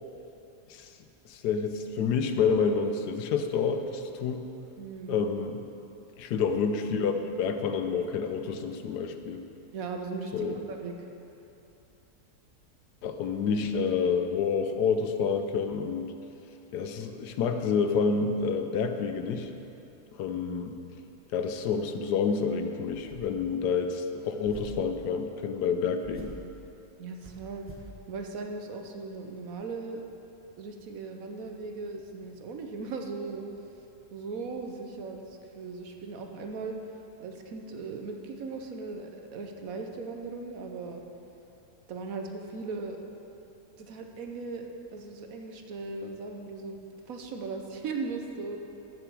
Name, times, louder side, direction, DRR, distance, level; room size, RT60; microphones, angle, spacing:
voice 1, 1.3-4.5 5.1-5.7 6.2-9.4 10.3-10.6 13.0-16.1 16.7-19.5 20.1-20.8 21.3-26.4, left 5 dB, 85° left, 7 dB, 1.2 m, -28 dB
voice 2, 4.8-5.2 9.7-11.1 27.0-27.7 28.1-30.0 30.6-33.4 34.1-36.8 37.2-41.0 41.9-43.0 43.8-46.8 47.0-48.6, right 4 dB, 65° right, 3 dB, 1.2 m, -38 dB
sound 1, 22.9-23.5 24.4-24.9 26.0-26.5 27.2-27.9, equal, 10° right, 0.9 m, -46 dB
13.5 x 6.5 x 4.7 m, 2.9 s
omnidirectional pair, 1.7 m